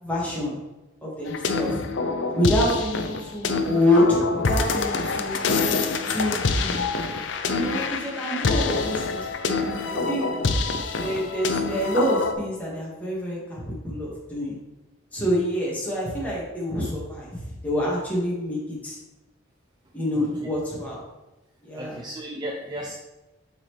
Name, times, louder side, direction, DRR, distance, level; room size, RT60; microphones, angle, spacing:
voice 1, 0.0-0.6 1.0-1.8 2.4-5.6 6.1-6.9 7.5-10.3 11.0-14.6 15.1-19.0 19.9-21.0 21.6-22.0, left 1 dB, 10° left, -6 dB, 1.8 m, -26 dB
sound 1, 1.2-12.3, left 3 dB, 65° left, 0.5 m, -26 dB
voice 2, 21.7-22.9, right 1 dB, 20° right, 0 dB, 0.5 m, -34 dB
7.6 x 4.2 x 3.3 m, 1.0 s
head